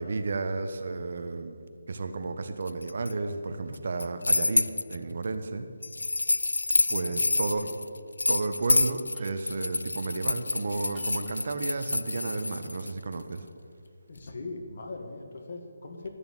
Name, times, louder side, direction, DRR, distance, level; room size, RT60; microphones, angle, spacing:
voice 1, 0.0-1.6 1.9-5.7 6.9-7.7 8.3-13.5, right 3 dB, 55° right, 8 dB, 1.1 m, -32 dB
sound 1, 2.7-3.1 3.7-5.0 5.8-12.9, left 2 dB, 85° left, 0.5 m, -27 dB
voice 2, 6.9-7.8 14.1-16.1, left 3 dB, 50° left, 3 dB, 2.1 m, -41 dB
sound 2, 7.2-7.3 7.5-7.9 9.1-9.6 10.9-11.4, right 4 dB, 10° right, 1.1 m, -58 dB
13.0 x 6.9 x 9.1 m, 2.2 s
figure-of-eight pair, 160°, 0 cm